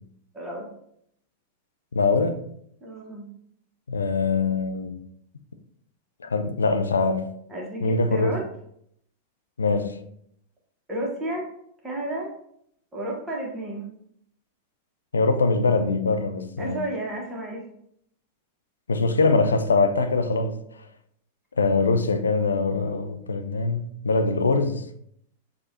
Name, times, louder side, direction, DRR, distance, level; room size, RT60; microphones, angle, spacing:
voice 1, 0.3-0.7 2.8-3.3 7.5-8.4 10.9-11.5 11.8-12.3 12.9-13.9 16.6-17.6, right 1 dB, 15° right, 1.3 m, -32 dB
voice 2, 1.9-2.4 3.9-5.0 6.2-7.3 7.8-8.4 9.6-10.0 15.1-16.8 18.9-20.6 21.6-24.8, left 3 dB, 75° left, 0.4 m, -23 dB
6.4 x 2.5 x 2.7 m
figure-of-eight pair, 90°, 0 cm